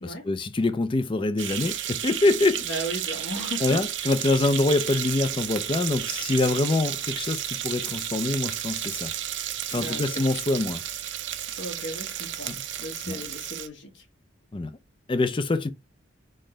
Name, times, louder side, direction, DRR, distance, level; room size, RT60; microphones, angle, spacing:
voice 1, 0.0-2.7 3.6-9.1 9.7-10.8 12.5-12.6 13.1-13.2 14.5-14.8 15.1-15.7, left 2 dB, 25° left, 0.4 m, -25 dB
sound 1, 1.4-13.7, right 11 dB, 65° right, 0.6 m, -32 dB
voice 2, 2.6-3.9 9.7-10.2 11.6-12.5 12.8-14.0, equal, 70° left, 1.5 m, -36 dB
4.3 x 3.7 x 3.2 m
head